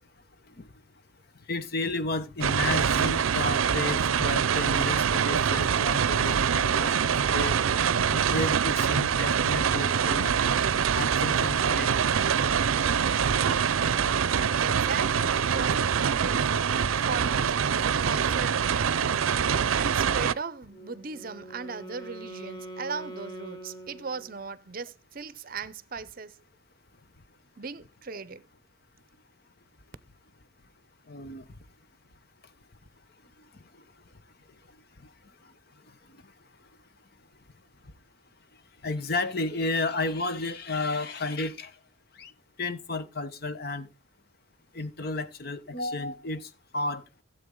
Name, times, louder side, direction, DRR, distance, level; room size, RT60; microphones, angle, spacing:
voice 1, 1.5-7.5 8.1-10.4 10.9-11.9 31.1-31.5 38.8-41.7 42.2-42.3 42.6-43.9 44.7-47.0, left 2 dB, 50° left, 0.9 m, -32 dB
sound 1, 2.4-20.3, right 7 dB, 85° right, 0.5 m, -25 dB
voice 2, 14.5-16.4 17.0-18.6 19.7-26.4 27.6-28.4, right 5 dB, 45° right, 0.6 m, -38 dB
Wind instrument woodwind instrument, 20.7-24.6, right 2 dB, 20° left, 1.5 m, -43 dB
16.0 x 7.8 x 3.8 m
head